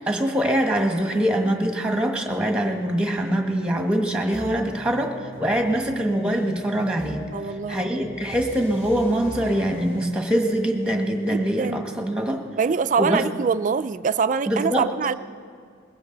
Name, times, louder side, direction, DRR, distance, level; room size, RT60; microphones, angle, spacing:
voice 1, 0.1-12.4 13.0-13.3 14.5-14.9, right 1 dB, 5° right, 3 dB, 1.3 m, -24 dB
sound 1, 4.3-12.2, equal, 35° left, 2.8 m, -40 dB
voice 2, 7.3-8.1 11.3-11.9 12.6-15.1, right 5 dB, 40° right, 12 dB, 0.3 m, -24 dB
21.0 x 16.0 x 3.9 m, 2.1 s
head